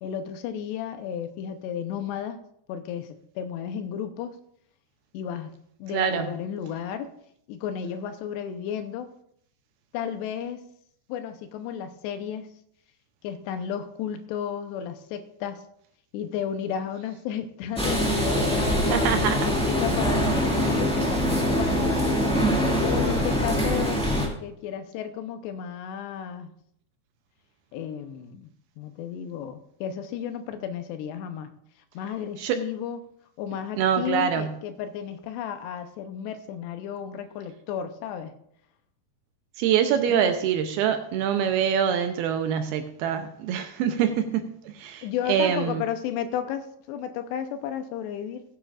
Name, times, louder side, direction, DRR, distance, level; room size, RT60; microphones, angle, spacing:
voice 1, 0.0-2.4 2.7-4.4 5.1-5.5 5.8-7.1 7.5-9.1 9.9-10.6 11.1-12.5 13.2-15.6 16.1-22.1 22.8-24.0 24.4-26.5 27.7-28.5 28.8-31.5 31.9-33.0 33.4-38.3 40.1-40.3 45.0-48.4, left 8 dB, 85° left, 8 dB, 2.9 m, -33 dB
voice 2, 5.9-6.3 18.8-19.4 32.4-32.6 33.8-34.5 39.6-45.8, right 8 dB, 80° right, 7 dB, 2.4 m, -25 dB
sound 1, 17.8-24.3, equal, 5° left, 0.8 m, -23 dB
17.5 x 10.0 x 2.5 m, 0.70 s
omnidirectional pair, 4.9 m